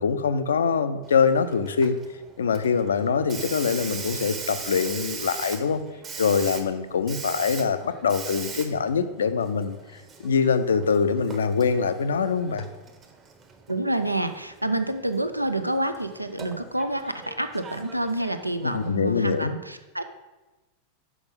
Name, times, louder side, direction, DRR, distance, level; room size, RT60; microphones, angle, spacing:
voice 1, 0.0-2.0 2.4-5.8 6.2-9.8 10.2-12.7 18.6-19.5, left 6 dB, 65° left, 11 dB, 0.5 m, -24 dB
Hiss, 1.0-19.4, right 5 dB, 25° right, 0.9 m, -41 dB
voice 2, 13.7-20.0, right 1 dB, 85° right, 9 dB, 0.5 m, -28 dB
6.1 x 5.1 x 5.3 m, 1.1 s
figure-of-eight pair, 90°, 0 cm